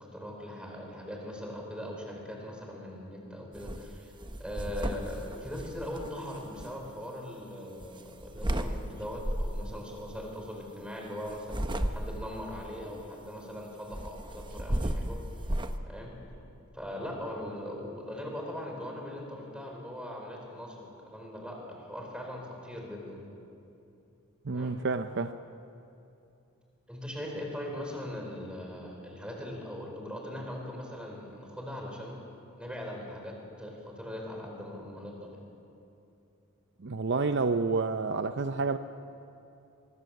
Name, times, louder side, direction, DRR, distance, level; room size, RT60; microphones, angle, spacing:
voice 1, 0.0-4.1 4.4-15.2 15.8-16.2 16.7-23.2 24.5-24.8 26.9-32.3 32.6-35.4, left 1 dB, 5° right, 5.0 m, -40 dB
sound 1, 3.5-3.8 4.2-6.7 7.8-8.7 9.2-9.7 11.3-12.3 13.9-15.8, right 1 dB, 20° right, 1.1 m, -33 dB
voice 2, 24.4-25.3 36.8-38.8, right 4 dB, 55° right, 0.7 m, -29 dB
23.5 x 23.5 x 7.8 m
head